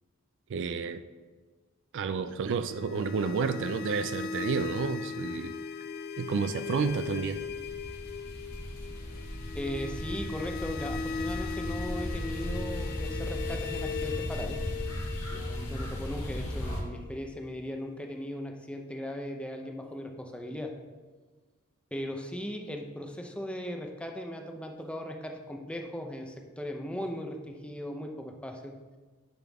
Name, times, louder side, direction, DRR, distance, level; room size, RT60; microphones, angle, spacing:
voice 1, 0.5-1.0 1.9-5.5 6.2-7.4, right 5 dB, 55° right, 11 dB, 0.4 m, -30 dB
sound 1, 2.5-17.4, left 6 dB, 45° left, 0.5 m, -39 dB
sound 2, 6.7-16.8, equal, 85° left, 2.5 m, -37 dB
voice 2, 9.5-14.6 15.3-20.7 21.9-28.7, equal, 5° left, 3 dB, 0.7 m, -38 dB
10.5 x 5.8 x 3.5 m, 1.4 s
head